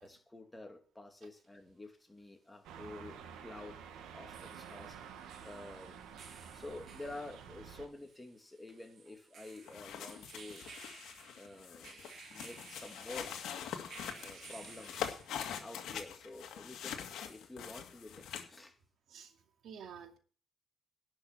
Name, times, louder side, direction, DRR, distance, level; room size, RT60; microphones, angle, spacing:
voice 1, 0.0-3.8 4.1-5.0 5.4-6.0 6.5-10.6 11.4-13.4 14.2-15.2 15.6-18.8, left 2 dB, 15° left, 5 dB, 2.5 m, -50 dB
sound 1, 1.4-1.5 4.1-15.7, right 5 dB, 55° right, 2.6 m, -56 dB
sound 2, 2.6-7.9, right 7 dB, 90° right, 1.9 m, -50 dB
sound 3, 9.5-18.6, left 8 dB, 80° left, 2.0 m, -44 dB
voice 2, 19.6-20.2, right 7 dB, 70° right, 5 dB, 2.5 m, -50 dB
11.5 x 6.2 x 8.8 m, 0.40 s
cardioid pair, 90°, 0 cm